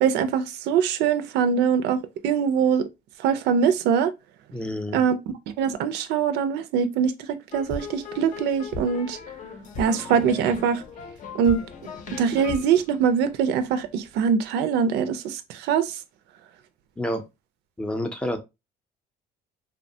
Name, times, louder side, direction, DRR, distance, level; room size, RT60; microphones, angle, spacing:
voice 1, 0.0-2.9 3.2-4.1 4.9-5.2 5.6-9.2 9.8-10.8 11.3-11.6 12.2-16.0, right 7 dB, 85° right, 0.4 m, -23 dB
voice 2, 4.5-5.0 17.0-17.2 17.8-18.4, left 1 dB, 5° left, 0.5 m, -28 dB
sound 1, 7.5-13.8, left 4 dB, 50° left, 0.6 m, -38 dB
2.8 x 2.1 x 2.6 m
cardioid pair, 110°, 17 cm